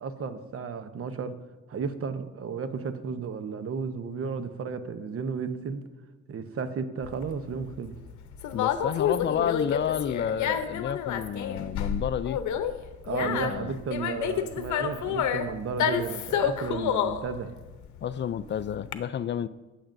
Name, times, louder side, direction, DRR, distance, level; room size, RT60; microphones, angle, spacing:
voice 1, 0.0-1.4 1.7-5.8 6.3-8.0 13.0-17.5, right 5 dB, 50° right, 0.9 m, -33 dB
Conversation, 7.0-18.9, left 8 dB, 75° left, 0.7 m, -29 dB
voice 2, 8.5-12.4 13.2-13.7 18.0-19.5, left 8 dB, 40° left, 0.4 m, -30 dB
18.0 x 7.1 x 2.6 m
cardioid pair, 90°, 30 cm